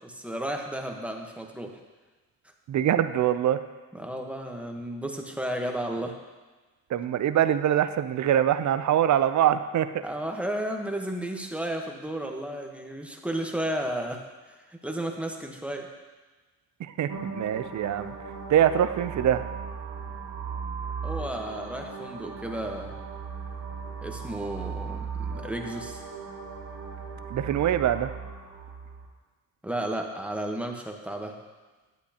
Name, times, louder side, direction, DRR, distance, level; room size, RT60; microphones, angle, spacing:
voice 1, 0.0-1.8 3.9-6.1 10.0-14.2 14.7-15.9 21.0-22.9 24.0-26.0 29.6-31.4, right 1 dB, 5° right, 2 dB, 1.2 m, -33 dB
voice 2, 2.7-3.6 6.9-9.9 16.8-18.1 18.5-19.5 27.3-28.1, right 10 dB, 50° right, 11 dB, 0.6 m, -24 dB
sound 1, 17.1-29.1, right 5 dB, 85° right, 1.9 m, -37 dB
10.5 x 8.1 x 2.9 m, 1.3 s
supercardioid pair, 65°, 36 cm